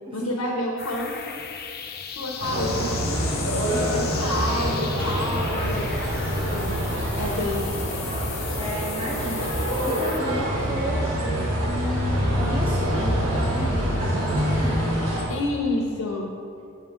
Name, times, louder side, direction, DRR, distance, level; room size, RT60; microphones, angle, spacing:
voice 1, 0.1-1.3 2.1-3.2 3.7-6.1 6.5-6.8 7.2-8.0 15.3-16.3, left 2 dB, 90° left, -2 dB, 0.8 m, -29 dB
sound 1, 0.8-10.2, left 8 dB, 50° left, 0.5 m, -36 dB
sound 2, 2.4-15.2, equal, 75° right, 1.7 m, -25 dB
voice 2, 6.7-7.0 8.6-14.9, equal, 25° right, -5 dB, 0.7 m, -33 dB
7.4 x 6.0 x 3.6 m, 2.6 s
head